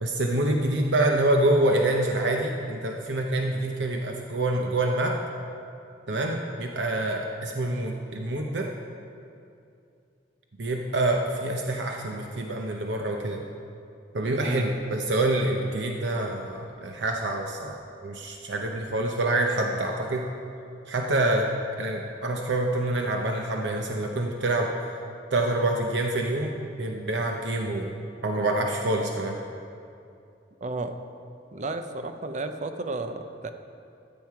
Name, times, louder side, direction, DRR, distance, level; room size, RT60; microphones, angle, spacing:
voice 1, 0.0-5.2 6.1-8.7 10.6-13.4 14.1-17.8 18.0-20.2 20.9-21.5 21.8-24.7 25.3-28.0 28.2-29.4, right 2 dB, 85° right, 2 dB, 0.8 m, -26 dB
voice 2, 30.6-31.0 31.5-33.5, right 2 dB, 45° right, 7 dB, 0.6 m, -33 dB
14.0 x 7.3 x 4.7 m, 2.5 s
head